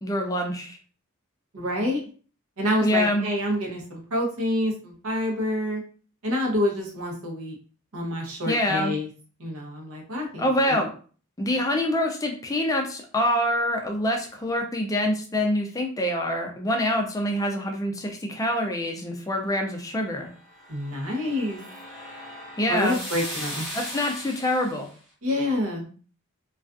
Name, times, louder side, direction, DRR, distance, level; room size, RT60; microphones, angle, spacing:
voice 1, 0.0-0.8 2.8-3.3 8.5-9.0 10.4-10.9 11.4-20.3 22.6-23.0 23.7-24.9, left 1 dB, 15° left, 2 dB, 0.4 m, -25 dB
voice 2, 1.5-2.0 2.6-5.8 6.2-7.6 7.9-9.1 9.4-10.8 20.7-21.6 22.7-23.7 25.2-25.9, left 1 dB, 75° right, 0 dB, 0.8 m, -27 dB
sound 1, 20.2-24.9, equal, 5° right, 1.0 m, -38 dB
2.3 x 2.3 x 2.4 m, 0.41 s
head